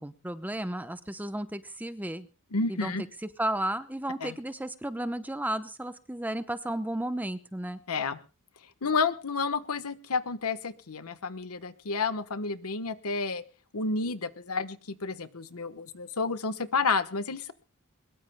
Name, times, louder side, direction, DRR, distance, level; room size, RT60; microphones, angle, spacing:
voice 1, 0.0-2.3 2.7-2.9 3.4-7.8, right 1 dB, 10° right, 10 dB, 0.8 m, -33 dB
voice 2, 2.5-3.0 4.2-4.4 7.9-8.2 8.8-13.4 13.7-17.5, left 4 dB, 75° left, 11 dB, 1.2 m, -30 dB
22.5 x 21.0 x 2.2 m, 0.33 s
head